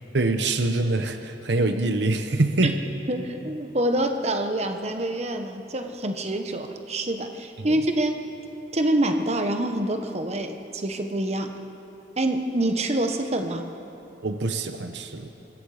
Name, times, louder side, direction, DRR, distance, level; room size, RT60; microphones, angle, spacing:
voice 1, 0.1-2.8 7.6-7.8 14.2-15.3, right 2 dB, 70° right, 8 dB, 0.9 m, -24 dB
voice 2, 3.1-8.2 8.7-11.5 12.2-13.7, right 1 dB, 35° right, 6 dB, 1.1 m, -26 dB
25.5 x 21.5 x 5.0 m, 2.9 s
head